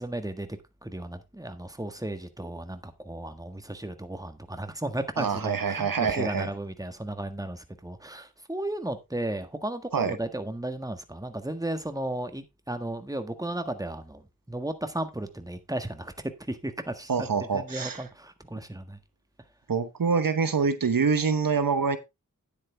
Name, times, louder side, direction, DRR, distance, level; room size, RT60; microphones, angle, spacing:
voice 1, 0.0-14.2 14.5-16.1 16.4-17.3 17.5-19.0, right 1 dB, 10° right, 1.6 m, -34 dB
voice 2, 5.2-6.5 9.9-10.2 17.1-18.1 19.7-22.0, right 5 dB, 80° right, 1.1 m, -26 dB
9.8 x 8.5 x 3.4 m
wide cardioid pair, 45°, 34 cm